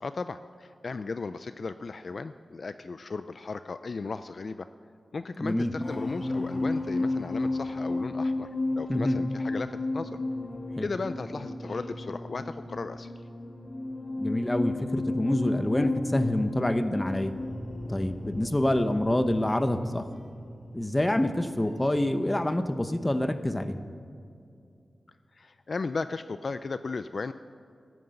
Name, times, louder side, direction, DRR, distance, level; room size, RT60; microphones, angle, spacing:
voice 1, 0.0-4.7 5.1-8.5 8.8-10.2 10.8-13.1 25.3-27.3, left 4 dB, 50° left, 12 dB, 0.3 m, -35 dB
voice 2, 5.4-5.7 8.9-9.2 10.8-10.9 14.2-17.3 17.9-20.1 20.7-23.8, left 1 dB, 15° left, 9 dB, 0.8 m, -27 dB
sound 1, 5.5-22.1 22.4-22.7, left 2 dB, 30° left, 2.3 m, -33 dB
16.0 x 9.3 x 7.7 m, 2.4 s
wide cardioid pair, 115°, 0 cm